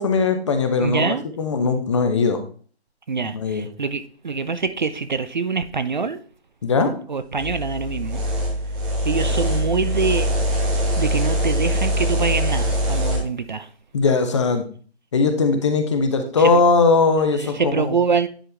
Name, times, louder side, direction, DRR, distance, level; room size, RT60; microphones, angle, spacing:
voice 1, 0.0-2.4 3.3-3.7 6.6-6.9 13.9-14.6 15.1-18.0, left 4 dB, 25° left, 0.8 m, -19 dB
voice 2, 0.8-1.2 3.1-6.2 7.1-8.3 9.0-10.3 11.0-13.7 16.4-16.5 17.3-18.3, right 5 dB, 45° right, 0.5 m, -24 dB
sound 1, 7.4-13.2, equal, 10° right, 0.8 m, -23 dB
10.0 x 4.5 x 3.3 m
figure-of-eight pair, 150°, 33 cm